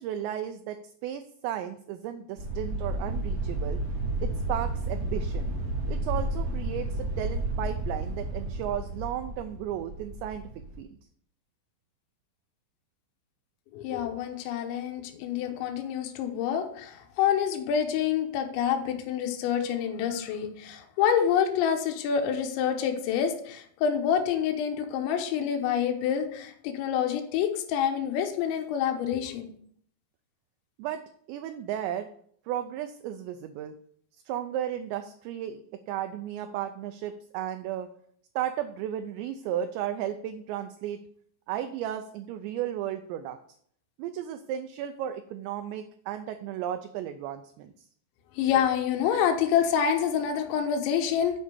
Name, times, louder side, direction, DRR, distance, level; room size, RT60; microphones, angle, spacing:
voice 1, 0.0-3.8 4.2-5.5 5.9-10.9 30.8-31.0 31.3-32.1 32.5-33.8 34.3-37.9 38.4-41.0 41.5-43.4 44.0-47.7, right 10 dB, 85° right, 8 dB, 2.6 m, -34 dB
sound 1, 2.4-10.8, right 2 dB, 60° right, 0.8 m, -32 dB
voice 2, 13.7-29.5 48.4-51.4, left 8 dB, 75° left, 4 dB, 3.2 m, -27 dB
8.6 x 5.0 x 6.9 m, 0.63 s
omnidirectional pair, 5.5 m